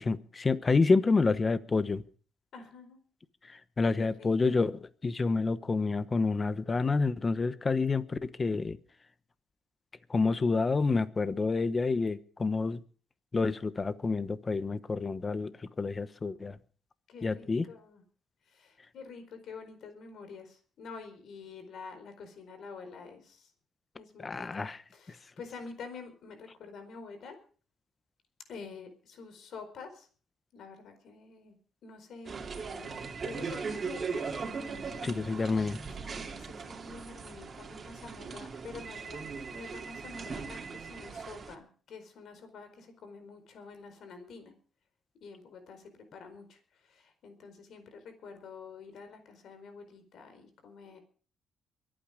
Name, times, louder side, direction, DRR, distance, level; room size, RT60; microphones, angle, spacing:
voice 1, 0.0-2.0 3.5-8.8 10.1-12.8 13.3-16.6 17.2-17.7 24.2-24.8 35.0-35.8, left 4 dB, 30° left, 14 dB, 1.1 m, -28 dB
voice 2, 2.5-3.0 4.0-4.7 17.1-18.0 18.5-23.5 23.9-27.4 28.5-30.1 30.5-31.6 31.8-34.3 36.0-44.5 45.2-51.0, left 4 dB, 70° left, 7 dB, 4.6 m, -48 dB
sound 1, 32.3-41.6, right 5 dB, 40° right, 2.6 m, -39 dB
23.5 x 9.0 x 5.1 m, 0.42 s
cardioid pair, 90°, 0 cm